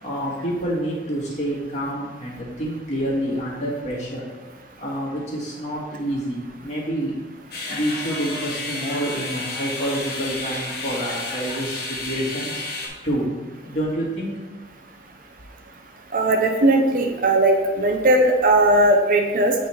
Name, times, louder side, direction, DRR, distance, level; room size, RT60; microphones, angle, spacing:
voice 1, 0.0-4.2 4.8-7.2 7.6-12.7 13.0-13.3 13.6-14.3, right 1 dB, 40° left, -5 dB, 1.8 m, -27 dB
sound 1, 7.5-12.9, left 2 dB, 60° left, 1.2 m, -31 dB
voice 2, 16.1-19.5, right 1 dB, 50° right, 4 dB, 0.6 m, -18 dB
7.8 x 3.3 x 4.3 m, 1.2 s
head